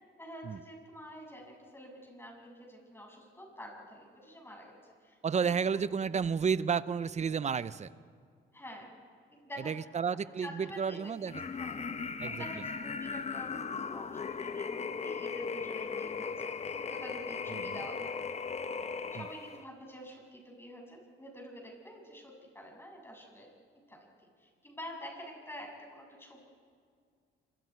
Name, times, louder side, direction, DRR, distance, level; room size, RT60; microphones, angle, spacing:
voice 1, 0.2-5.9 8.5-8.9 9.4-9.8 10.4-11.8 12.2-18.6 19.1-23.5 23.9-26.4, equal, 10° left, 0 dB, 7.1 m, -48 dB
voice 2, 5.2-7.9 9.6-11.3 12.2-12.4 17.5-17.8 19.1-19.3, right 6 dB, 35° right, 16 dB, 0.7 m, -31 dB
sound 1, 11.3-19.6, left 5 dB, 35° left, 0.9 m, -37 dB
26.5 x 24.5 x 4.7 m, 2.1 s
cardioid pair, 90°, 20 cm